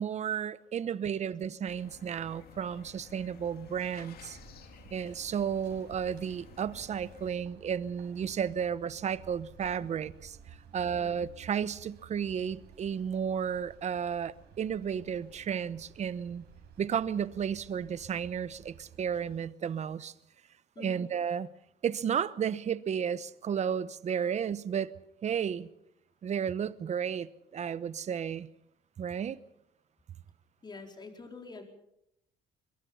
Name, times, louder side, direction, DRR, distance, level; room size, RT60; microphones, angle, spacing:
voice 1, 0.0-4.4 4.9-10.1 10.7-16.4 16.8-20.1 20.8-21.5 21.8-24.9 25.2-25.7 26.2-28.5 29.0-29.4, right 8 dB, 40° right, 1.0 m, -33 dB
sound 1, 1.6-7.3, left 8 dB, 65° left, 2.3 m, -53 dB
sound 2, 3.7-19.3, right 7 dB, 75° right, 5.7 m, -55 dB
voice 2, 30.6-31.6, left 4 dB, 25° left, 4.4 m, -46 dB
22.5 x 22.5 x 5.6 m
cardioid pair, 110°, 17 cm